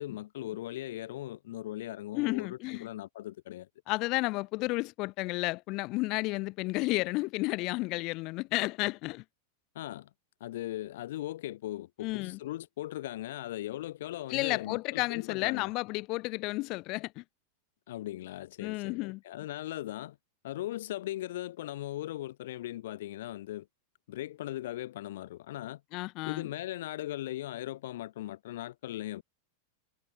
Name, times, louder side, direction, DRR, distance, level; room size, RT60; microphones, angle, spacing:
voice 1, 0.0-3.7 9.7-10.1 10.4-15.7 17.9-20.2 20.4-23.7 24.1-25.8 26.2-29.2, left 14 dB, 55° left, 1.0 m, -39 dB
voice 2, 2.1-2.9 3.9-9.2 12.0-12.4 14.3-17.2 18.6-19.2 25.9-26.5, left 23 dB, 40° left, 1.2 m, -32 dB
figure-of-eight pair, 90°, 0 cm